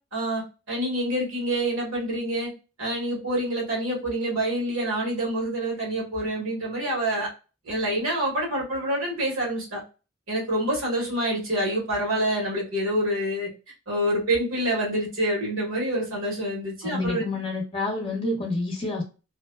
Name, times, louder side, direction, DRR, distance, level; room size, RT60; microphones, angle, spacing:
voice 1, 0.1-2.5 2.8-7.3 7.6-9.8 10.3-13.5 13.9-17.2, right 1 dB, 85° right, -1 dB, 1.3 m, -27 dB
voice 2, 16.8-19.0, left 2 dB, 25° left, -1 dB, 0.9 m, -28 dB
2.6 x 2.2 x 2.2 m, 0.32 s
head